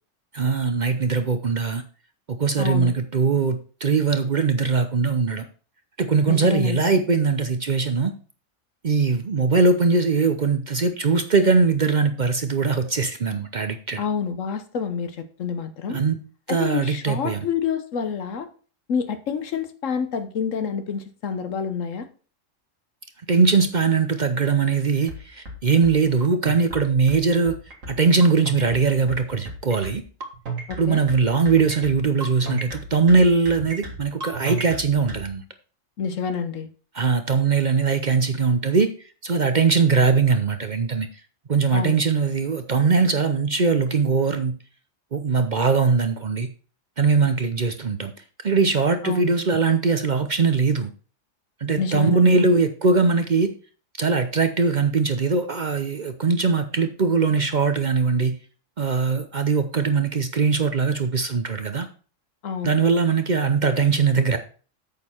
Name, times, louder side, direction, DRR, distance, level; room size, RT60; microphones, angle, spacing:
voice 1, 0.3-1.8 2.4-5.5 6.0-8.1 8.8-14.0 15.9-16.2 16.5-17.4 23.3-27.5 27.9-30.0 30.8-35.4 36.9-38.9 39.2-41.1 41.5-44.5 45.1-46.5 47.0-48.1 48.4-50.9 51.6-53.5 54.0-58.4 58.8-61.9 62.6-64.4, right 4 dB, 45° right, 8 dB, 0.7 m, -21 dB
voice 2, 2.6-2.9 6.3-7.0 14.0-16.0 16.5-18.5 18.9-22.1 30.7-31.0 36.0-36.7 41.7-42.0 49.0-49.3 51.8-52.5 62.4-62.7, left 6 dB, 75° left, 10 dB, 1.3 m, -28 dB
sound 1, 25.1-35.2, right 3 dB, 85° right, 2.7 m, -33 dB
8.6 x 6.7 x 4.4 m, 0.39 s
omnidirectional pair, 1.3 m